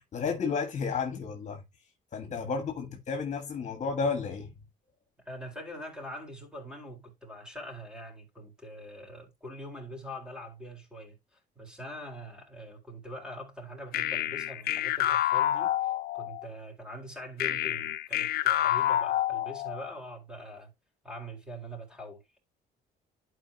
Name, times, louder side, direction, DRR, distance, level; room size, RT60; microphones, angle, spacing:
voice 1, 0.0-1.6 2.1-4.5, left 5 dB, 45° left, 1.6 m, -32 dB
voice 2, 5.2-20.7 21.0-22.2, equal, 5° right, 4.2 m, -43 dB
sound 1, 13.9-16.4 17.4-19.9, left 12 dB, 65° left, 0.6 m, -28 dB
11.5 x 4.9 x 2.8 m
cardioid pair, 110°, 17 cm